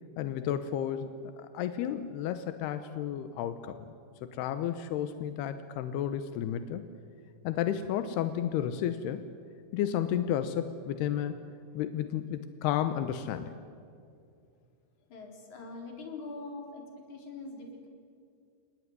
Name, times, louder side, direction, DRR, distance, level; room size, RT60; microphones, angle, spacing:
voice 1, 0.2-1.1 1.5-3.8 4.2-6.8 7.4-9.3 9.7-11.4 11.7-13.5, left 10 dB, 80° left, 10 dB, 2.4 m, -32 dB
voice 2, 15.1-17.9, left 3 dB, 40° left, 2 dB, 4.7 m, -43 dB
29.5 x 19.0 x 9.6 m, 2.4 s
omnidirectional pair, 5.8 m